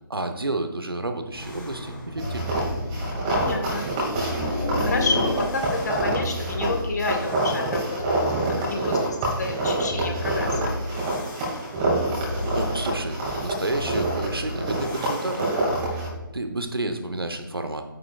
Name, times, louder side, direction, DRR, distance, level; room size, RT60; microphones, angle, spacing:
voice 1, 0.1-2.5 12.2-15.5 16.0-16.1 16.3-17.8, right 2 dB, 85° right, 6 dB, 1.0 m, -30 dB
sound 1, 1.3-16.2, left 1 dB, 10° left, 1.9 m, -33 dB
sound 2, 2.2-16.1, right 2 dB, 20° right, 2.3 m, -27 dB
voice 2, 3.3-3.9 4.8-9.0 9.3-10.8, left 3 dB, 50° left, 3 dB, 1.5 m, -30 dB
9.5 x 8.7 x 2.4 m, 1.1 s
figure-of-eight pair, 150°, 12 cm